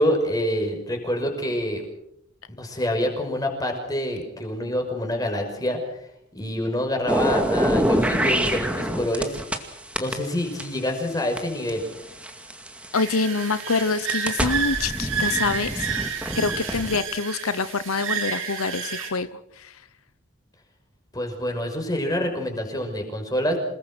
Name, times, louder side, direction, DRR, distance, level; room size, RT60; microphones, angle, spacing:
voice 1, 0.0-1.8 2.5-5.8 6.3-9.4 10.0-11.9 21.1-23.6, left 1 dB, 15° left, 3 dB, 5.7 m, -26 dB
sound 1, 7.1-9.6 9.9-12.9 13.5-17.0, right 1 dB, 5° right, 2.1 m, -25 dB
voice 2, 12.9-15.9 16.4-19.7, left 4 dB, 85° left, 13 dB, 1.0 m, -26 dB
sound 2, 12.9-19.1, right 6 dB, 75° right, 6.2 m, -30 dB
28.0 x 20.0 x 6.3 m, 0.76 s
head